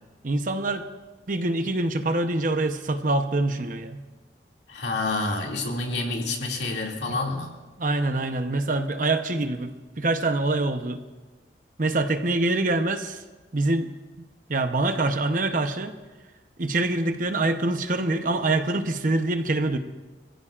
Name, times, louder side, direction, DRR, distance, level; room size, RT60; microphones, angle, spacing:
voice 1, 0.2-0.9 1.3-4.0 7.1-7.2 7.8-11.0 11.8-13.2 13.5-13.9 14.5-15.9 16.6-19.8, right 2 dB, 50° right, 7 dB, 0.9 m, -25 dB
voice 2, 4.7-7.5, left 2 dB, 75° left, 0 dB, 2.5 m, -28 dB
26.0 x 15.5 x 2.5 m, 1.2 s
head